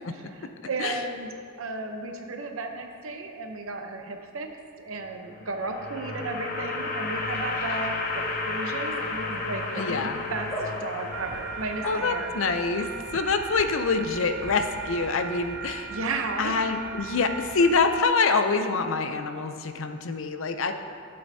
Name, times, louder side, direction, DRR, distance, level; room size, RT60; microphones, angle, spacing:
voice 1, 0.1-4.5 4.8-10.5 10.8-12.9 15.9-16.7, right 3 dB, 80° right, 4 dB, 0.8 m, -34 dB
sound 1, 5.2-12.4, left 3 dB, 45° left, 0.8 m, -32 dB
sound 2, 7.3-15.5, equal, 10° left, 1.2 m, -43 dB
voice 2, 9.8-10.2 11.8-12.9 13.1-15.9 16.4-20.7, left 4 dB, 75° left, 7 dB, 0.6 m, -25 dB
sound 3, 11.1-18.0, right 6 dB, 50° right, 0.4 m, -38 dB
13.5 x 7.8 x 2.7 m, 2.3 s
head